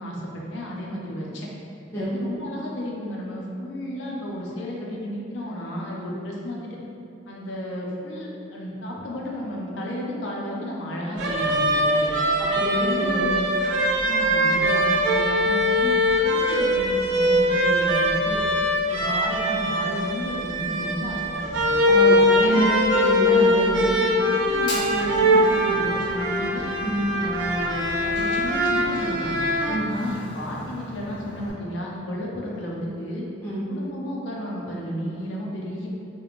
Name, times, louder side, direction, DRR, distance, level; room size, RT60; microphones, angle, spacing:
voice 1, 0.0-1.5 1.9-6.8 7.3-12.1 12.7-13.4 14.0-18.4 18.9-21.7 22.4-22.7 24.3-26.7 27.1-29.4 29.9-33.3 33.7-35.9, equal, 85° left, -3 dB, 0.4 m, -33 dB
sound 1, 11.2-29.8, equal, 80° right, 0.3 m, -22 dB
voice 2, 12.4-13.3 21.8-22.7 22.9-23.9 26.8-27.0 29.7-29.9 33.4-33.6, right 1 dB, 15° left, -9 dB, 0.4 m, -26 dB
Fire, 24.5-31.5, left 1 dB, 50° left, 0.9 m, -39 dB
2.4 x 2.1 x 3.0 m, 2.6 s
head